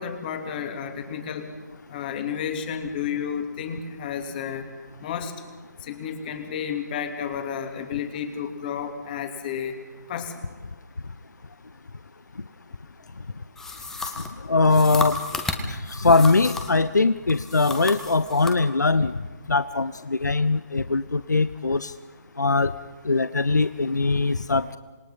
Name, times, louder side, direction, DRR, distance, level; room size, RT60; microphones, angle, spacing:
voice 1, 0.0-1.6 1.9-4.7 5.0-5.3 5.8-9.8 10.1-10.3, left 7 dB, 30° left, 6 dB, 2.7 m, -31 dB
sound 1, 13.6-16.9 17.3-18.6, left 3 dB, 5° left, 1.5 m, -33 dB
voice 2, 14.5-15.2 15.7-19.2 19.5-21.9 22.4-22.7 23.0-24.8, left 3 dB, 75° left, 14 dB, 0.8 m, -21 dB
27.0 x 21.5 x 5.6 m, 1.3 s
figure-of-eight pair, 145°, 10 cm